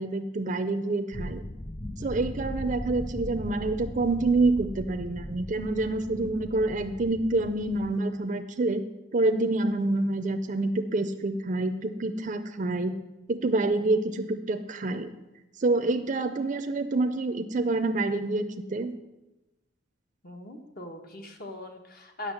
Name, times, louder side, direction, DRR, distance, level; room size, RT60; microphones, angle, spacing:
voice 1, 0.0-1.4 2.0-8.8 9.1-13.0 13.3-15.1 15.6-19.0, right 2 dB, 40° right, 7 dB, 0.6 m, -27 dB
sound 1, 1.1-7.9, left 1 dB, 10° left, 0.4 m, -39 dB
voice 2, 20.2-22.3, left 2 dB, 50° left, 4 dB, 1.3 m, -40 dB
8.9 x 6.3 x 7.7 m, 0.99 s
head